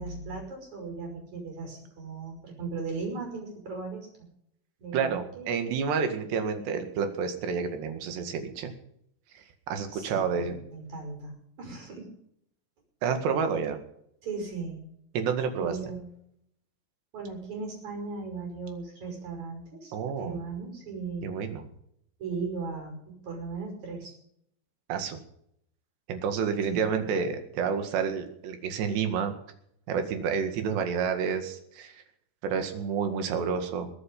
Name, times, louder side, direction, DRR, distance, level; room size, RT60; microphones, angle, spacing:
voice 1, 0.0-4.1 4.8-5.5 9.9-12.1 14.2-14.8 15.6-16.1 17.1-21.3 22.2-24.1 26.7-26.9, right 4 dB, 35° right, 3 dB, 6.6 m, -37 dB
voice 2, 4.9-8.7 9.3-10.6 13.0-13.8 15.2-15.7 19.9-20.4 21.2-21.7 24.9-25.2 26.1-29.4 29.9-32.0 32.4-33.9, right 6 dB, 65° right, 7 dB, 3.8 m, -29 dB
22.0 x 9.6 x 5.5 m, 0.70 s
omnidirectional pair, 5.7 m